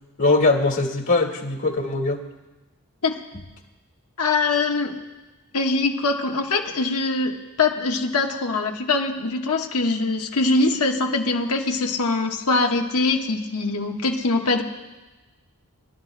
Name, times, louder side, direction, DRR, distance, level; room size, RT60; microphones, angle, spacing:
voice 1, 0.2-2.2, left 3 dB, 55° left, 2 dB, 1.9 m, -21 dB
voice 2, 4.2-4.9 5.5-14.6, left 3 dB, 90° left, 2 dB, 1.3 m, -23 dB
26.0 x 12.5 x 2.2 m, 1.1 s
head